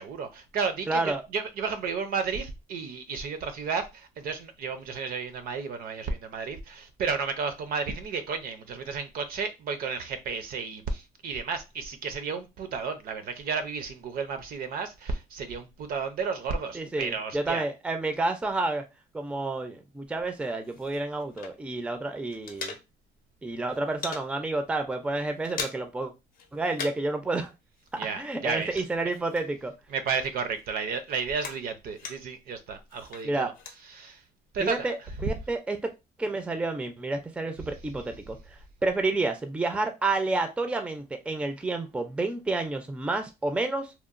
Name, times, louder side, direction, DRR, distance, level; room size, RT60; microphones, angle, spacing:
voice 1, 0.0-17.6 28.0-28.8 29.9-33.5 33.9-34.2 34.5-34.9, right 5 dB, 60° right, 0.5 m, -32 dB
voice 2, 0.9-1.2 16.7-18.8 19.1-22.8 23.4-26.1 26.5-27.5 27.9-29.7 33.2-33.5 34.6-35.8 36.2-43.9, right 2 dB, 5° right, 0.4 m, -30 dB
sound 1, 20.4-21.9 22.1-23.3 23.5-24.3 24.7-24.9 25.2-26.1 26.3-27.2 27.4-29.8 30.1-32.5 32.9-33.8, left 5 dB, 55° left, 0.6 m, -41 dB
2.9 x 2.0 x 2.4 m
cardioid pair, 110°, 17 cm